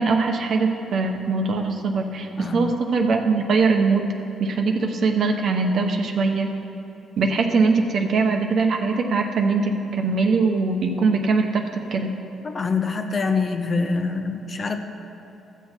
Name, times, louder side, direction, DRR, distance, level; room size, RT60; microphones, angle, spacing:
voice 1, 0.0-4.1 4.4-6.5 7.2-12.2, right 4 dB, 60° right, 4 dB, 1.0 m, -22 dB
voice 2, 2.4-2.7 12.4-14.8, left 4 dB, 40° left, 6 dB, 0.8 m, -25 dB
14.5 x 7.0 x 4.5 m, 2.8 s
cardioid pair, 90°, 0 cm